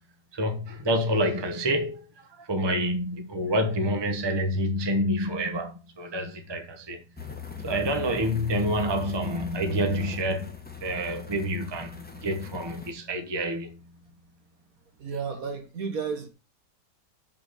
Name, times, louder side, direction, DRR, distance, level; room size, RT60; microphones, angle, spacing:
voice 1, 0.3-2.0 2.4-7.0 7.6-10.6 10.8-13.8, equal, 20° right, 1.0 m, -28 dB
sound 1, 7.2-12.9, left 6 dB, 5° left, 1.1 m, -40 dB
voice 2, 15.0-16.3, right 5 dB, 55° right, 1.9 m, -32 dB
6.3 x 6.0 x 6.8 m
omnidirectional pair, 1.8 m